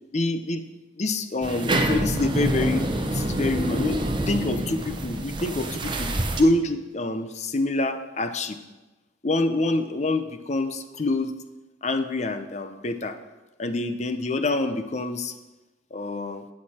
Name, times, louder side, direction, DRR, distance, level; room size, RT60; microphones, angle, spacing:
voice 1, 0.1-0.6 1.0-4.0 4.3-8.6 9.2-11.3 11.8-13.2 13.6-15.3 15.9-16.4, left 2 dB, 35° left, 9 dB, 0.6 m, -26 dB
sound 1, 1.4-6.4, right 1 dB, 25° right, 0.8 m, -27 dB
12.5 x 8.5 x 4.3 m, 1.1 s
head